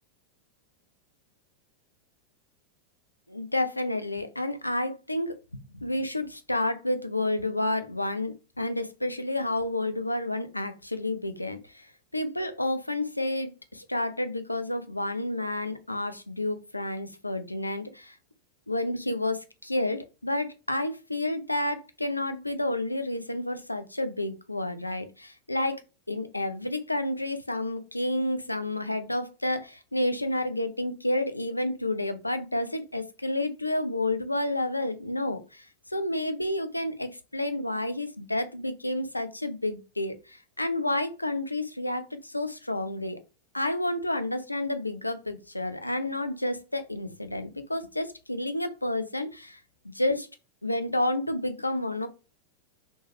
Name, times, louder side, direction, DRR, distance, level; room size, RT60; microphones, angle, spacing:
voice 1, 3.3-11.9 12.1-18.2 18.7-25.8 26.1-43.2 43.5-50.3 50.6-52.1, left 1 dB, 85° left, 0.3 m, -30 dB
3.0 x 2.1 x 3.0 m
figure-of-eight pair, 90°, 0 cm